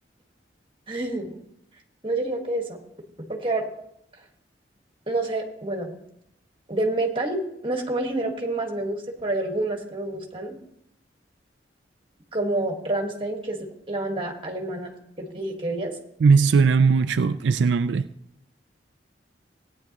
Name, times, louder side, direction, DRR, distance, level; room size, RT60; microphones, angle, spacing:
voice 1, 0.9-1.4 2.0-2.8 3.3-3.7 5.1-5.9 6.7-10.6 12.3-14.9 15.2-16.0, right 2 dB, 30° right, 1.6 m, -28 dB
voice 2, 16.2-18.1, right 5 dB, 80° right, 0.4 m, -19 dB
17.5 x 9.5 x 3.0 m
head